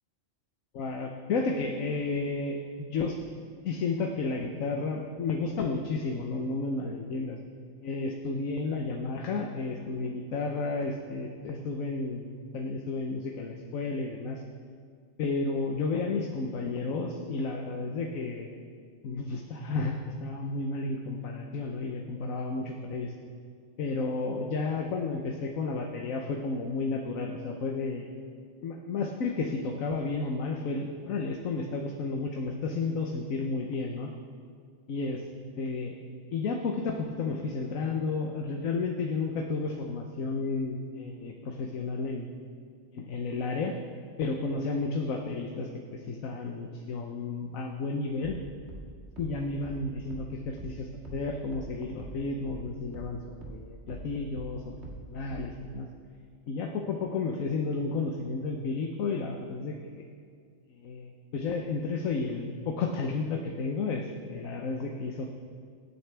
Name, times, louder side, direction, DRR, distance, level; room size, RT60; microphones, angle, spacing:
voice 1, 0.7-3.2 3.6-7.4 7.8-14.4 15.2-18.5 19.0-23.1 23.8-28.1 28.6-34.1 34.9-35.2 35.6-36.0 36.3-42.3 42.9-43.7 44.2-48.4 49.2-54.8 55.1-55.9 56.5-60.0 60.8-65.3, left 3 dB, 90° left, 2 dB, 1.3 m, -32 dB
sound 1, 48.2-53.2 53.4-55.7, right 2 dB, 55° right, 2.3 m, -44 dB
24.0 x 9.8 x 3.4 m, 2.1 s
omnidirectional pair, 1.4 m